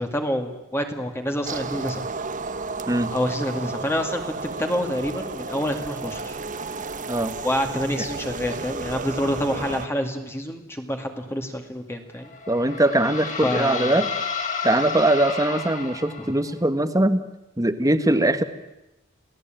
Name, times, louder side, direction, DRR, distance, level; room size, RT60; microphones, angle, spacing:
voice 1, 0.0-2.1 3.1-6.4 7.4-12.3 13.4-14.0, equal, 10° left, 4 dB, 2.2 m, -27 dB
sound 1, 1.5-9.9, right 3 dB, 40° right, 1.1 m, -32 dB
sound 2, 12.2-16.5, left 5 dB, 35° left, 3.9 m, -31 dB
voice 2, 12.5-14.1 14.6-17.2 17.6-18.4, right 1 dB, 15° right, 10 dB, 1.5 m, -21 dB
28.0 x 18.0 x 9.1 m, 0.95 s
head